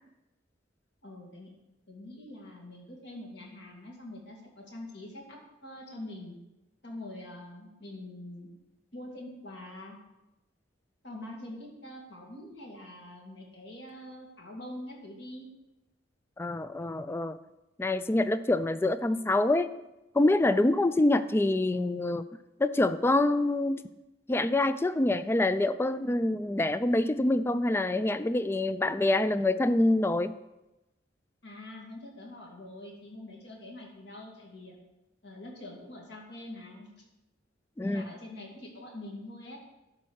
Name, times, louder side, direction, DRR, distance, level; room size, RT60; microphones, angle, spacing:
voice 1, 1.0-1.5 1.9-6.4 6.8-8.5 8.9-10.0 11.0-15.5 31.4-34.8 35.2-36.9 37.8-39.6, left 1 dB, 65° left, -1 dB, 2.4 m, -44 dB
voice 2, 16.4-17.4 17.8-19.7 20.1-22.3 22.6-23.8 24.3-30.3 37.8-38.1, left 2 dB, 15° left, 13 dB, 0.3 m, -26 dB
11.5 x 4.2 x 6.4 m, 0.98 s
head